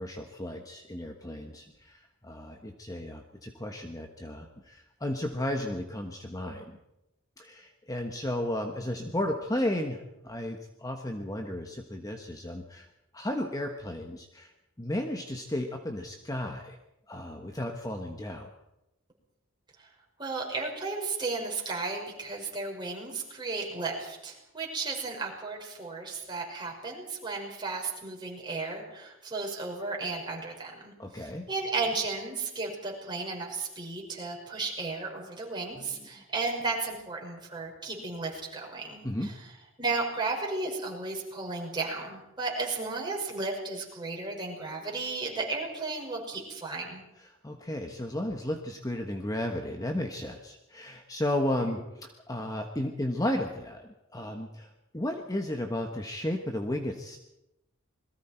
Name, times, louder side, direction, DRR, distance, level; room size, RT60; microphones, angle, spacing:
voice 1, 0.0-6.8 7.4-12.9 13.1-14.5 14.8-16.8 17.1-18.5 31.0-31.5 35.7-36.1 39.0-39.3 47.2-57.2, left 1 dB, 20° left, 3 dB, 1.3 m, -34 dB
voice 2, 20.2-39.3 39.8-47.0, right 3 dB, 20° right, -1 dB, 5.8 m, -34 dB
27.5 x 21.5 x 4.5 m, 0.91 s
head